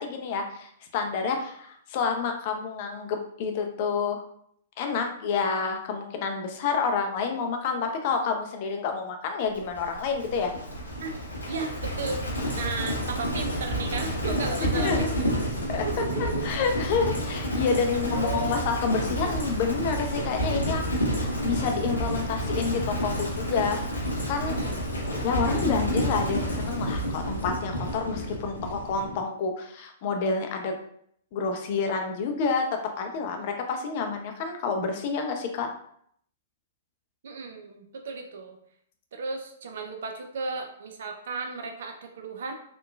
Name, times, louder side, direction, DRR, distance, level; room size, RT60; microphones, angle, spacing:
voice 1, 0.0-4.3 4.8-10.5 14.7-15.1 15.7-20.8 21.2-24.6 25.2-30.7 31.3-35.7, left 5 dB, 45° left, 4 dB, 0.4 m, -29 dB
Livestock farm animals working animals, 9.5-29.2, equal, 80° left, 0.8 m, -30 dB
voice 2, 11.5-12.2 12.6-15.3 15.8-16.4 17.9-18.6 19.2-19.3 24.5-25.2 37.2-38.6 39.1-42.5, right 4 dB, 60° right, 4 dB, 0.4 m, -35 dB
2.9 x 2.1 x 2.3 m, 0.66 s
figure-of-eight pair, 110°, 0 cm